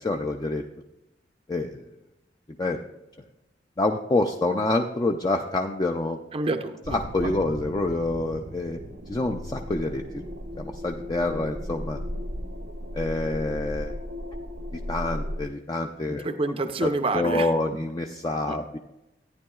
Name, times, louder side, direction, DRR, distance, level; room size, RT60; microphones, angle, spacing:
voice 1, 0.0-0.6 1.5-1.8 2.6-2.8 3.8-6.2 6.9-8.8 9.1-10.2 10.6-12.0 12.9-13.9 14.7-16.3 16.8-18.8, left 2 dB, 25° left, 3 dB, 0.4 m, -27 dB
voice 2, 6.3-7.0 7.2-7.3 16.2-17.5 18.5-18.6, right 2 dB, 30° right, 8 dB, 0.5 m, -27 dB
sound 1, 6.8-15.4, equal, 70° right, 0.8 m, -36 dB
14.0 x 9.6 x 2.3 m, 0.92 s
head